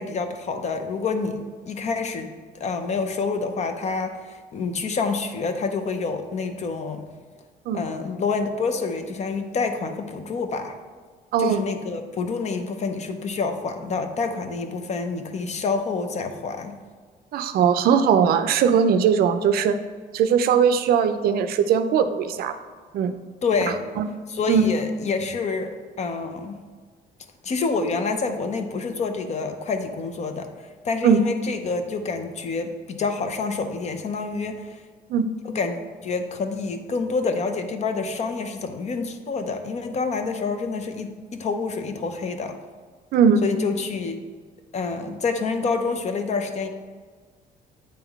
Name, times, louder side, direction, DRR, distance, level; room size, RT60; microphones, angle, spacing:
voice 1, 0.0-2.3 2.5-7.1 7.7-10.8 11.4-16.8 23.4-23.8 24.3-26.6 27.4-30.5 30.8-34.8 35.4-42.6 43.4-44.2 44.7-46.7, left 4 dB, 40° left, 7 dB, 0.7 m, -27 dB
voice 2, 11.3-11.6 17.3-19.8 20.1-22.6 22.9-23.1 24.0-24.1 24.5-24.7 31.0-31.2 35.1-35.3 43.1-43.4, right 7 dB, 65° right, 10 dB, 0.5 m, -19 dB
8.8 x 3.6 x 3.5 m, 1.5 s
cardioid pair, 110°, 17 cm